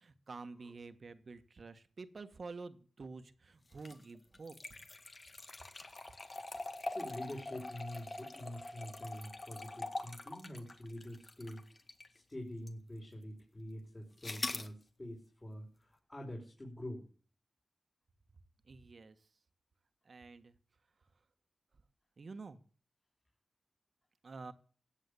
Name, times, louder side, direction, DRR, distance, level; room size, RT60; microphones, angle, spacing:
voice 1, 0.0-4.5 18.7-19.2 20.0-20.5 22.2-22.6 24.2-24.5, right 4 dB, 65° right, 10 dB, 1.4 m, -49 dB
sound 1, 3.7-12.2 12.7-12.8 14.2-14.7, left 2 dB, 45° left, 1.9 m, -44 dB
voice 2, 6.5-17.1, left 1 dB, 30° left, -2 dB, 5.2 m, -46 dB
16.0 x 8.3 x 7.0 m, 0.41 s
cardioid pair, 45°, 0 cm